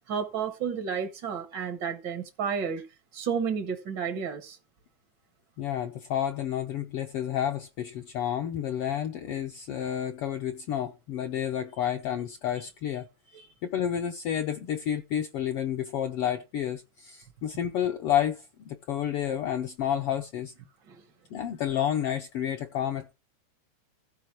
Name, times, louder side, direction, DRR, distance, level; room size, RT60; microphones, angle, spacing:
voice 1, 0.1-2.9 3.1-4.6 13.3-13.5 20.9-21.0, right 6 dB, 55° right, 1.3 m, -31 dB
voice 2, 5.6-13.1 13.6-20.5 21.3-23.1, left 10 dB, 65° left, 1.5 m, -30 dB
15.0 x 5.0 x 6.0 m
omnidirectional pair, 3.5 m